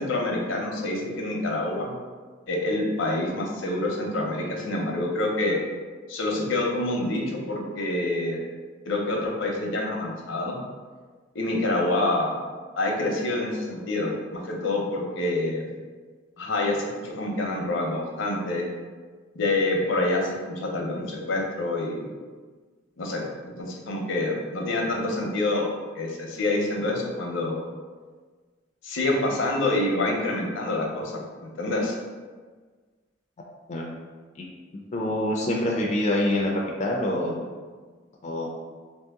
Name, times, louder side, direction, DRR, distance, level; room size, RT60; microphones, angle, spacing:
voice 1, 0.0-1.9 2.5-5.6 6.1-8.4 8.8-10.6 11.3-12.4 12.8-15.6 16.4-18.7 19.4-22.1 23.0-25.7 25.9-27.6 28.8-32.0, left 2 dB, 80° left, -1 dB, 0.7 m, -27 dB
voice 2, 34.9-36.5 36.8-37.5 38.2-38.5, left 1 dB, 35° left, -1 dB, 0.4 m, -25 dB
2.8 x 2.8 x 3.4 m, 1.5 s
head